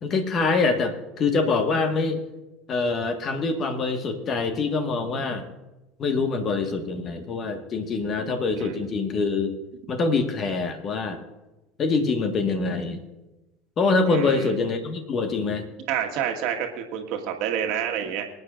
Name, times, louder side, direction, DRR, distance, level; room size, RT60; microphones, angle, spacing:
voice 1, 0.0-2.2 2.7-5.4 6.0-9.6 9.9-11.2 11.8-13.0 13.8-15.7, left 4 dB, 40° left, 6 dB, 1.6 m, -25 dB
voice 2, 14.1-14.5 15.9-18.2, right 9 dB, 60° right, 3 dB, 1.6 m, -28 dB
24.0 x 9.4 x 2.6 m, 1.1 s
hypercardioid pair, 70°, 0 cm